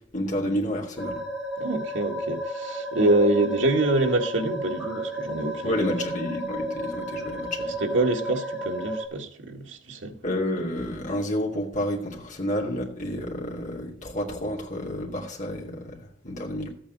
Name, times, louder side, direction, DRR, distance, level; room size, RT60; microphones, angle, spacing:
voice 1, 0.1-1.2 5.6-7.8 10.2-16.7, left 1 dB, 40° left, 2.7 m, -30 dB
sound 1, 1.0-9.0, right 1 dB, 5° right, 3.3 m, -32 dB
voice 2, 1.6-5.9 7.8-10.2, right 2 dB, 80° right, 1.6 m, -25 dB
13.5 x 8.6 x 4.0 m
head